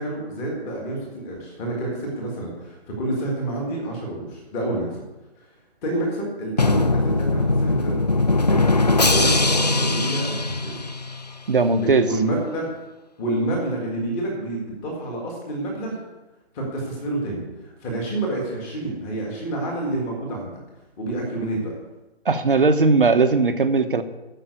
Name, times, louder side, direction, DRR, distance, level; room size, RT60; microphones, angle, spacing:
voice 1, 0.0-5.0 5.4-5.5 5.8-7.9 8.4-10.8 11.7-12.7 13.2-16.0 16.5-20.6 21.0-21.7, right 2 dB, 10° left, -1 dB, 1.6 m, -28 dB
Drum, 6.6-11.4, left 2 dB, 40° left, 0.4 m, -20 dB
voice 2, 11.5-12.1 22.2-24.0, right 3 dB, 50° right, 9 dB, 1.2 m, -18 dB
14.0 x 5.9 x 8.5 m, 1.0 s
figure-of-eight pair, 160°, 33 cm